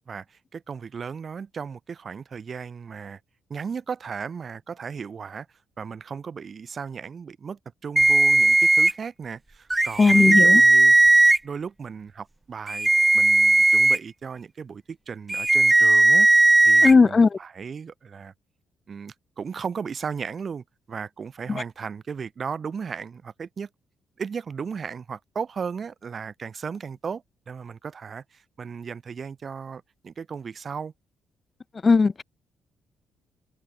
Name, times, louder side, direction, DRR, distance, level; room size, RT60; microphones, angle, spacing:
voice 1, 0.0-3.2 3.5-5.5 5.8-11.0 11.4-16.3 16.6-18.3 18.9-23.7 24.2-30.9, right 6 dB, 30° right, 5.3 m, -36 dB
sound 1, 8.0-8.9 9.7-11.4 12.7-14.0 15.3-16.9, right 2 dB, 10° right, 0.8 m, -17 dB
voice 2, 10.0-10.6 16.8-17.3 31.8-32.2, left 4 dB, 20° left, 0.5 m, -17 dB
cardioid pair, 170°, 0 cm